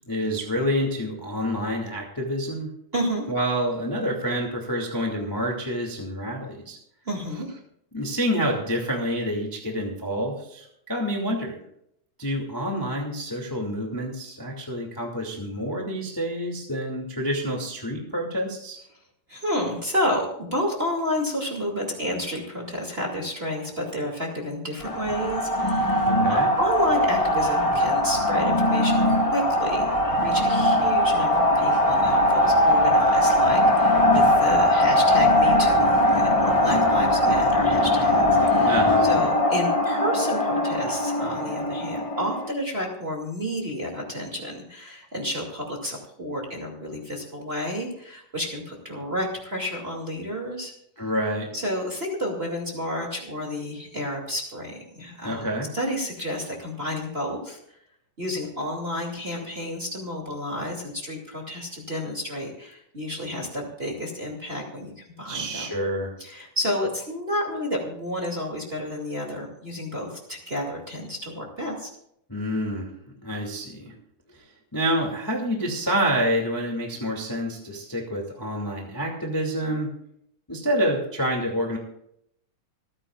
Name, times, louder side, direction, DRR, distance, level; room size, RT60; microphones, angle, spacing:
voice 1, 0.1-2.7 3.3-6.8 7.9-11.6 12.2-18.8 26.1-26.5 38.7-39.1 51.0-51.5 55.2-55.7 65.3-66.1 72.3-73.9 74.3-74.4 74.7-79.9 80.5-81.8, equal, 5° left, 0 dB, 1.9 m, -28 dB
voice 2, 2.9-3.2 7.1-7.5 19.3-50.7 51.5-55.5 55.7-57.6 58.2-65.6 66.2-71.9, left 1 dB, 20° right, -1 dB, 2.4 m, -30 dB
sound 1, 24.8-42.5, left 1 dB, 25° left, 0.7 m, -20 dB
27.5 x 9.8 x 2.5 m, 0.73 s
omnidirectional pair, 3.8 m